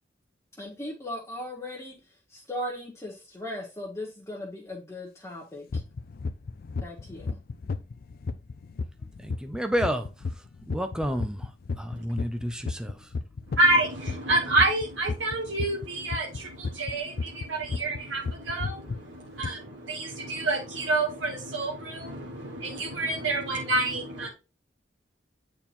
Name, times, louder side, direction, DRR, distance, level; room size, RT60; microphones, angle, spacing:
voice 1, 0.6-2.0 2.3-5.8 6.8-7.4, left 1 dB, 15° left, -3 dB, 1.2 m, -38 dB
sound 1, 5.7-18.0 18.3-19.0 19.4-19.5, left 4 dB, 55° left, 0.4 m, -33 dB
voice 2, 9.2-11.5 11.8-13.1, equal, 5° right, 7 dB, 0.5 m, -31 dB
voice 3, 13.5-24.3, right 2 dB, 75° right, -1 dB, 1.5 m, -28 dB
8.8 x 4.3 x 2.6 m, 0.29 s
head